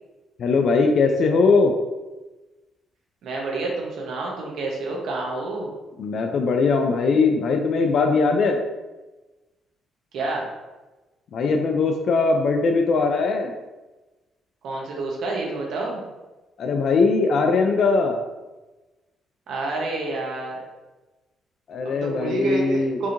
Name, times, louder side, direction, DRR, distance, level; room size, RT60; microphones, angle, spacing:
voice 1, 0.4-1.7 6.0-8.6 11.3-13.5 16.6-18.2 21.7-23.0, left 4 dB, 60° left, 3 dB, 0.4 m, -20 dB
voice 2, 3.2-5.7 10.1-10.5 14.6-16.0 19.5-20.6 21.8-23.1, right 2 dB, 75° right, -2 dB, 0.9 m, -28 dB
4.7 x 2.8 x 2.5 m, 1.1 s
cardioid pair, 90°, 0 cm